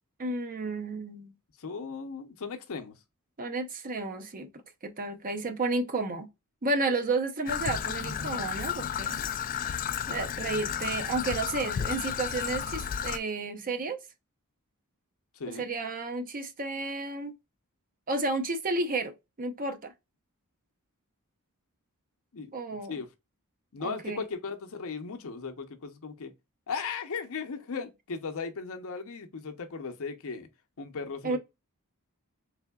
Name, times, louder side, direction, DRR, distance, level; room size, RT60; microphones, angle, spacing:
voice 1, 0.2-1.3 3.4-4.5 4.8-6.3 6.6-9.2 10.1-14.0 15.6-17.3 18.1-19.9 22.5-23.0 23.8-24.2 31.2-31.4, right 3 dB, 40° right, 0.6 m, -32 dB
voice 2, 1.6-3.0 9.2-9.3 15.3-15.7 22.3-22.5 22.9-23.1 23.7-26.3 26.7-30.5 30.8-31.4, left 5 dB, 65° left, 0.7 m, -37 dB
Traffic noise roadway noise / Trickle dribble, 7.5-13.2, left 8 dB, 40° left, 0.3 m, -32 dB
3.6 x 3.4 x 2.3 m
head